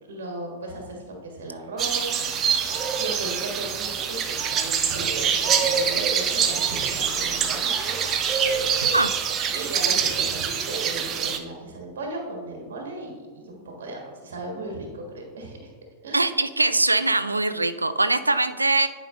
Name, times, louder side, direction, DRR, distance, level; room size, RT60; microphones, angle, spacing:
voice 1, 0.1-7.8 8.4-8.9 9.5-15.6 16.0-16.3, right 2 dB, 60° right, 1 dB, 1.5 m, -36 dB
sound 1, 1.8-11.4, right 7 dB, 30° right, 0.6 m, -25 dB
voice 2, 16.1-18.9, right 2 dB, 80° right, 13 dB, 0.3 m, -22 dB
10.5 x 5.0 x 2.5 m, 1.5 s
figure-of-eight pair, 90°, 0 cm